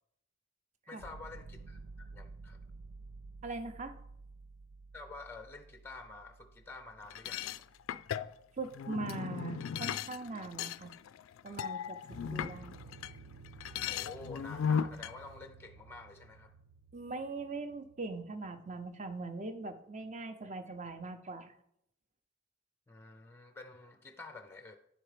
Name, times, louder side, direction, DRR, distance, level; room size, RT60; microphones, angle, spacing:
voice 1, 0.9-2.6 4.9-7.6 13.9-16.5 22.9-24.8, left 3 dB, 10° left, 7 dB, 0.4 m, -49 dB
sound 1, 1.0-8.8 12.1-18.2, right 3 dB, 80° right, 0.5 m, -53 dB
voice 2, 3.4-4.0 8.6-10.9 11.4-12.8 16.9-21.5, right 3 dB, 35° right, 8 dB, 0.7 m, -41 dB
sound 2, 7.1-13.1 13.4-15.1, left 8 dB, 80° left, 0.3 m, -37 dB
10.0 x 4.5 x 5.0 m, 0.76 s
head